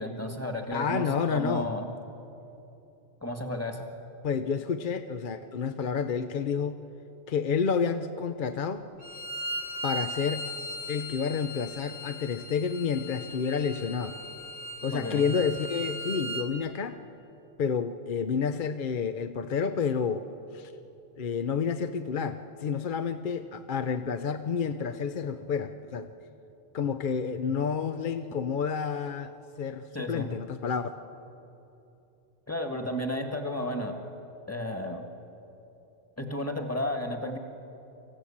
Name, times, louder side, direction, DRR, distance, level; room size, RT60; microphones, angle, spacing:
voice 1, 0.0-1.9 3.2-3.9 14.9-15.3 29.9-30.3 32.5-34.0 34.5-35.0 36.2-37.4, left 1 dB, 15° left, 4 dB, 1.7 m, -33 dB
voice 2, 0.7-1.7 4.2-6.8 7.3-8.8 9.8-10.5 10.9-14.2 14.8-17.0 17.6-20.3 20.5-20.7 21.2-26.1 26.7-30.9, left 6 dB, 50° left, 8 dB, 0.8 m, -30 dB
Bowed string instrument, 9.0-16.5, equal, 35° left, 2.1 m, -38 dB
24.0 x 15.5 x 8.6 m, 2.9 s
omnidirectional pair, 1.2 m